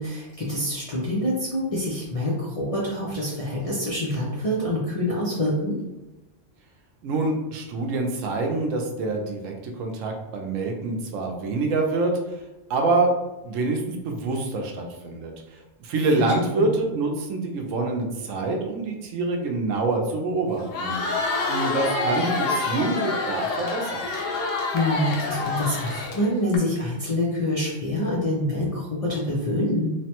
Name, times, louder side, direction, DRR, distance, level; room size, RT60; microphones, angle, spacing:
voice 1, 0.0-5.8 16.6-16.7 24.7-29.9, left 1 dB, 45° left, -7 dB, 0.4 m, -26 dB
voice 2, 7.0-12.1 12.7-13.1 13.4-15.3 15.8-21.0 21.4-24.1, right 3 dB, 80° right, 2 dB, 1.0 m, -26 dB
Crowd, 20.6-26.6, left 3 dB, 80° left, 1.0 m, -27 dB
3.1 x 2.1 x 2.8 m, 1.0 s
omnidirectional pair, 1.3 m